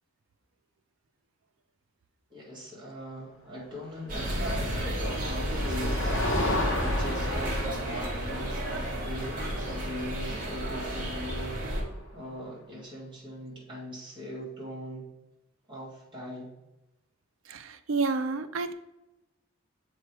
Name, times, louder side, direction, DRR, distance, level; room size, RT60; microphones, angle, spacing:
voice 1, 2.3-11.8 12.1-15.1 15.7-16.5, equal, 25° right, -5 dB, 1.8 m, -41 dB
sound 1, 4.1-11.8, equal, 40° right, 1.3 m, -31 dB
Motor vehicle (road), 4.3-12.1, left 1 dB, 70° left, 1.1 m, -36 dB
voice 2, 17.5-18.7, right 4 dB, 80° right, 10 dB, 0.5 m, -30 dB
6.7 x 3.1 x 4.5 m, 0.97 s
head